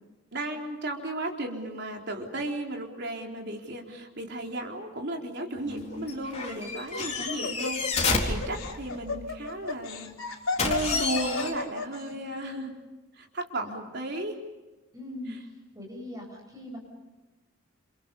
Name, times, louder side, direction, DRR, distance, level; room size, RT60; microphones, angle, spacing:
voice 1, 0.3-12.7 13.1-14.4 15.3-15.4, right 1 dB, 50° right, 1 dB, 4.0 m, -35 dB
sound 1, 5.6-9.2 10.6-11.5, left 4 dB, 30° left, 4.1 m, -30 dB
voice 2, 5.6-6.1 7.3-7.5 12.1-12.7 14.9-15.3 15.7-16.8, equal, 15° right, 0 dB, 7.8 m, -41 dB
Laughter, 6.6-12.0, left 3 dB, 65° left, 3.6 m, -33 dB
29.5 x 29.5 x 5.5 m, 1.1 s
head